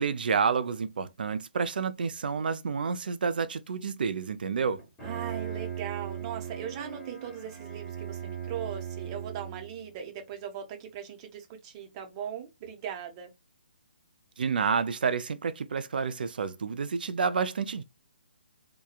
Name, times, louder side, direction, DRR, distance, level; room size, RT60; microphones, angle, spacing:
voice 1, 0.0-4.8 14.4-17.8, right 5 dB, 65° right, 0.4 m, -29 dB
Bowed string instrument, 4.8-9.9, right 8 dB, 15° left, 1.2 m, -38 dB
voice 2, 5.0-13.3, right 9 dB, 30° right, 0.8 m, -39 dB
2.8 x 2.2 x 2.2 m
figure-of-eight pair, 140°, 5 cm